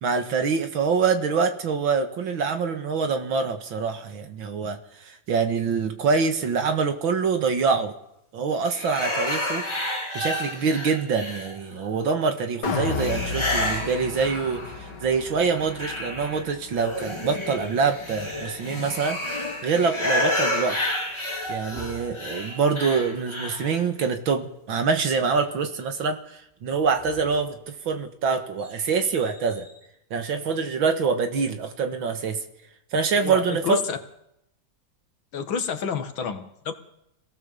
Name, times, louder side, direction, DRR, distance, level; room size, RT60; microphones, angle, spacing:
voice 1, 0.0-7.9 8.3-9.7 10.1-14.6 15.0-20.8 21.5-29.7 30.1-32.4 32.9-33.8, right 5 dB, 80° right, 7 dB, 2.5 m, -25 dB
sound 1, 8.7-11.8 12.9-14.9 15.3-23.8, left 1 dB, 15° left, 2.9 m, -30 dB
sound 2, 12.6-18.8 19.2-19.3, left 5 dB, 60° left, 2.3 m, -34 dB
sound 3, 21.1-22.6 26.6-29.9, right 2 dB, 30° right, 3.7 m, -48 dB
voice 2, 33.2-34.0 35.3-36.7, left 6 dB, 85° left, 6 dB, 2.4 m, -29 dB
26.5 x 17.5 x 7.1 m, 0.81 s
omnidirectional pair, 2.1 m